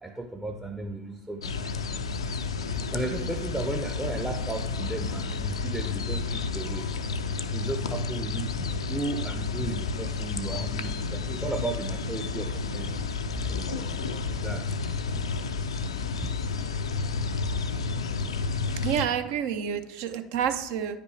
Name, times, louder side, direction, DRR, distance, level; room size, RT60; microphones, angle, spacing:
voice 1, 0.0-1.5 2.9-7.0 7.5-8.5 8.9-12.5 12.7-13.0 13.5-13.8 14.3-14.6, right 2 dB, 10° right, 2 dB, 0.6 m, -34 dB
sound 1, 1.4-19.1, left 4 dB, 80° left, 0.4 m, -31 dB
voice 2, 18.8-21.0, right 8 dB, 60° right, 10 dB, 0.6 m, -29 dB
9.6 x 5.2 x 3.2 m, 0.90 s
figure-of-eight pair, 70°, 3 cm